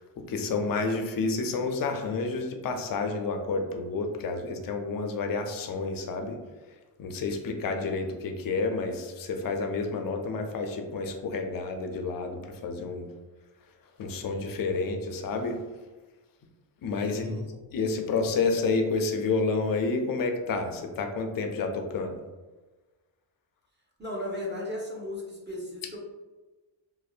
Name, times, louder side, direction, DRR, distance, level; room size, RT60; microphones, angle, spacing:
voice 1, 0.0-6.4 7.0-13.1 14.0-15.6 16.8-17.4 17.7-22.2, left 3 dB, 50° left, 5 dB, 0.4 m, -30 dB
voice 2, 17.0-17.4 24.0-26.0, left 1 dB, 25° right, -3 dB, 0.7 m, -36 dB
2.6 x 2.0 x 2.3 m, 1.2 s
cardioid pair, 70°, 47 cm